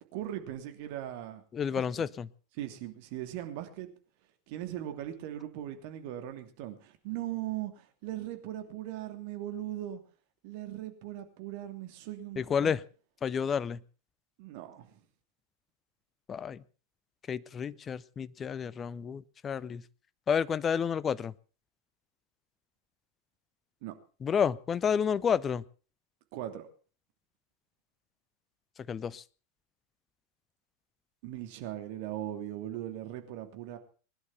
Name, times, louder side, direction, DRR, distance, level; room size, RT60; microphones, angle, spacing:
voice 1, 0.0-1.4 1.7-1.8 2.6-3.9 4.5-10.0 10.4-12.7 14.4-15.0 23.8-23.9 26.3-26.7 31.2-33.8, right 13 dB, 45° right, 2.9 m, -39 dB
voice 2, 1.5-2.3 12.4-12.8 13.2-13.8 16.3-16.6 17.3-19.8 20.3-21.3 24.2-25.6 28.9-29.2, left 7 dB, 20° left, 0.7 m, -30 dB
21.0 x 11.0 x 5.8 m
figure-of-eight pair, 90°, 0 cm